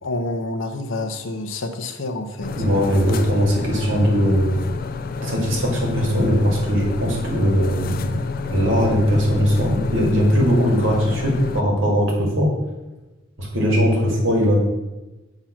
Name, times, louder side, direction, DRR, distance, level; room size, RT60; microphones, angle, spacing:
voice 1, 0.0-2.6, left 2 dB, 70° left, 6 dB, 0.8 m, -28 dB
sound 1, 2.4-11.6, left 4 dB, 45° left, 0.4 m, -29 dB
voice 2, 2.5-4.6 5.2-8.2 8.5-12.5 13.4-14.6, equal, 70° right, -1 dB, 2.2 m, -19 dB
7.3 x 3.8 x 5.7 m, 1.1 s
head